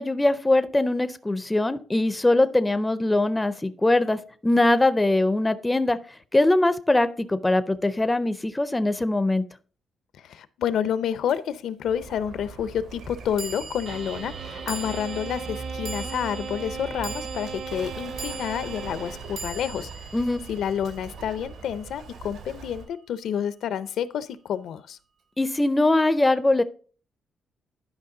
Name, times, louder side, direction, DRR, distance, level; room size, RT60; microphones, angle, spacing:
voice 1, 0.0-6.0 6.3-9.4 20.1-20.4 25.4-26.6, left 2 dB, 10° left, 12 dB, 0.4 m, -22 dB
voice 2, 10.2-20.1 20.5-25.0, left 9 dB, 75° left, 14 dB, 0.6 m, -29 dB
sound 1, 11.3-11.4 13.4-21.8, right 5 dB, 70° right, 1.4 m, -41 dB
Bird, 11.8-22.9, right 4 dB, 85° right, 2.4 m, -41 dB
sound 2, 13.9-19.7, right 5 dB, 50° right, 0.8 m, -38 dB
11.0 x 5.3 x 3.8 m, 0.41 s
wide cardioid pair, 170°, 0 cm